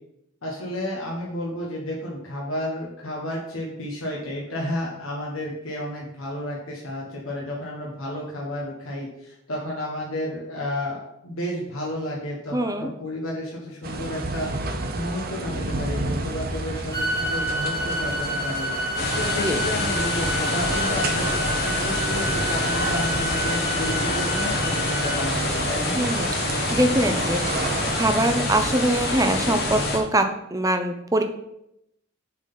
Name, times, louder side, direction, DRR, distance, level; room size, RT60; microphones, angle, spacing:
voice 1, 0.4-26.0, left 1 dB, 85° left, -3 dB, 1.3 m, -32 dB
voice 2, 12.5-12.9 19.2-19.6 25.9-27.4 27.9-31.2, right 1 dB, 15° right, 7 dB, 0.6 m, -23 dB
sound 1, 13.8-29.9, right 2 dB, 45° right, 0.9 m, -31 dB
sound 2, 16.9-25.2, equal, 15° left, 1.2 m, -30 dB
sound 3, 19.0-30.0, left 2 dB, 50° left, 1.3 m, -26 dB
7.2 x 4.0 x 5.7 m, 0.82 s
head